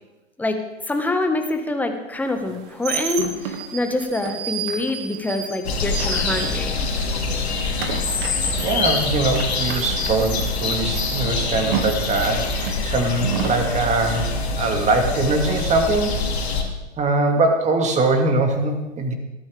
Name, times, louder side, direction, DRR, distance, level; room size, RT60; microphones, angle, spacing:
voice 1, 0.9-6.8, left 2 dB, 5° left, 5 dB, 1.5 m, -25 dB
sound 1, 2.4-7.0 7.3-13.6, right 7 dB, 45° right, 2.2 m, -31 dB
sound 2, 5.6-16.6, left 3 dB, 65° left, 2.8 m, -25 dB
voice 2, 8.6-16.3 17.0-19.1, right 2 dB, 20° right, 4 dB, 2.3 m, -22 dB
20.5 x 13.5 x 3.5 m, 1.1 s
figure-of-eight pair, 100°, 35 cm